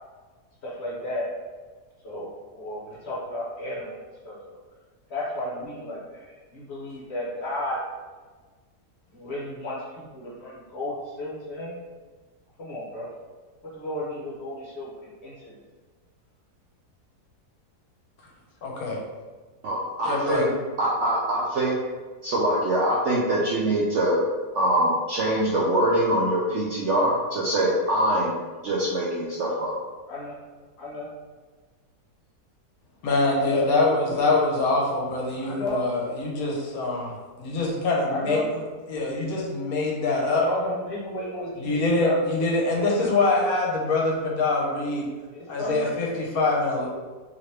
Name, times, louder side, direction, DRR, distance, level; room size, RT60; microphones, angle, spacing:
voice 1, 0.6-1.3 2.0-4.5 5.1-7.8 9.1-11.7 12.6-13.1 13.7-15.6 30.1-30.4 30.8-31.1 33.4-33.7 34.0-34.3 35.4-35.8 38.1-38.5 40.4-42.5 43.0-43.1 45.3-45.9, left 1 dB, 55° left, -5 dB, 0.9 m, -33 dB
voice 2, 18.6-19.0 20.0-20.5 33.0-37.1 37.4-38.6 38.9-40.4 41.6-45.1 45.5-46.9, left 2 dB, 70° left, -2 dB, 1.1 m, -24 dB
voice 3, 19.6-20.5 20.8-21.7 22.2-24.2 24.5-28.4 28.6-29.8, right 1 dB, 70° right, -5 dB, 0.7 m, -23 dB
2.9 x 2.9 x 3.2 m, 1.4 s
omnidirectional pair, 1.7 m